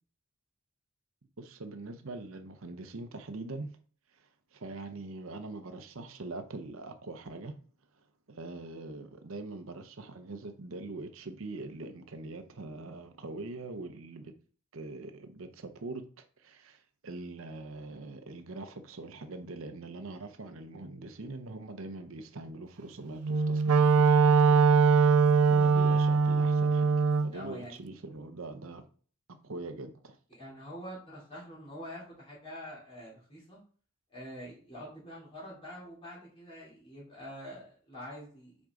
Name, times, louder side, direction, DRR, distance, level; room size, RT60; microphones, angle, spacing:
voice 1, 1.4-3.8 4.1-7.6 8.3-14.3 14.7-28.9 29.3-30.2, right 2 dB, 65° right, 0.7 m, -43 dB
Wind instrument woodwind instrument, 23.2-27.3, right 5 dB, 80° right, 0.4 m, -22 dB
voice 2, 27.3-27.8 30.3-33.6 34.1-38.7, equal, 25° left, 3.0 m, -45 dB
6.1 x 5.1 x 3.8 m
head